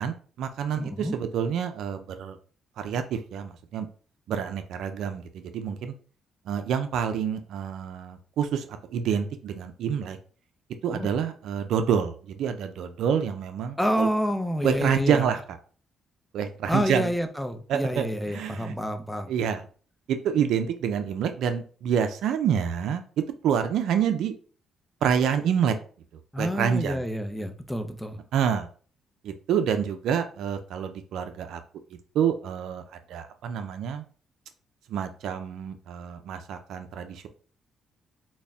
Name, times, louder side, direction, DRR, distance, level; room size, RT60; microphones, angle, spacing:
voice 1, 0.0-2.4 2.8-3.9 4.3-5.9 6.5-8.7 8.9-10.2 10.8-14.1 14.6-15.4 16.3-17.1 17.7-18.8 19.3-19.6 20.1-24.3 25.0-25.8 26.4-27.0 28.3-28.7 29.2-31.6 32.1-32.8 33.1-34.0 34.9-37.3, right 8 dB, 80° right, 0.4 m, -27 dB
voice 2, 0.8-1.2 10.9-11.1 13.8-15.3 16.7-19.3 26.3-28.2, equal, 5° left, 0.5 m, -28 dB
4.0 x 2.1 x 3.5 m
cardioid pair, 90°, 0 cm